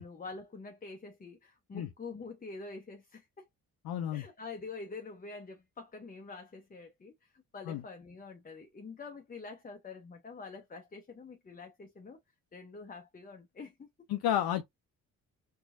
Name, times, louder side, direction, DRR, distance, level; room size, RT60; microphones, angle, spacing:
voice 1, 0.0-3.4 4.1-12.2 12.5-13.9, left 4 dB, 20° left, 0.7 m, -46 dB
voice 2, 3.8-4.2 7.7-7.8 14.1-14.7, left 11 dB, 60° left, 0.6 m, -31 dB
4.4 x 2.4 x 2.5 m
hypercardioid pair, 45°, 41 cm